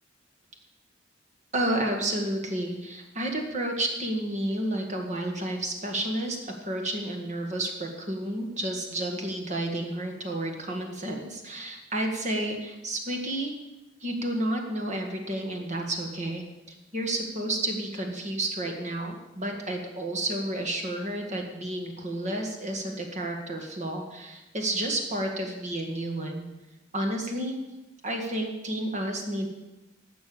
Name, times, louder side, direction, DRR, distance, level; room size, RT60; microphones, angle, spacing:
voice 1, 1.5-13.5 14.0-26.4 26.9-27.6 28.0-29.5, right 1 dB, 40° right, 2 dB, 1.8 m, -31 dB
12.0 x 6.9 x 7.0 m, 1.0 s
head